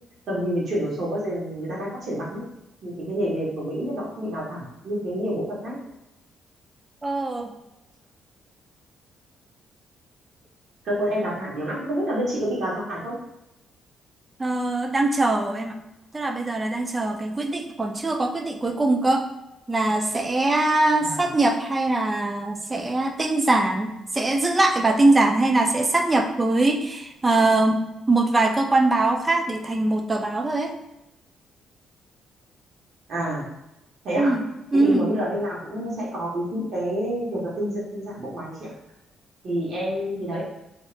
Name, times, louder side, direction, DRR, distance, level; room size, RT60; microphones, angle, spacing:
voice 1, 0.3-2.4 2.8-5.7 10.8-13.1 21.0-21.2 33.1-33.4 34.0-34.3 34.7-38.7 39.4-40.4, equal, 60° right, -5 dB, 1.3 m, -28 dB
voice 2, 7.0-7.5 14.4-15.8 16.1-19.3 19.7-27.8 28.1-30.8 34.2-34.4 34.7-35.1, right 2 dB, 25° right, 5 dB, 0.4 m, -22 dB
2.8 x 2.4 x 3.2 m, 0.91 s
cardioid pair, 90°, 0 cm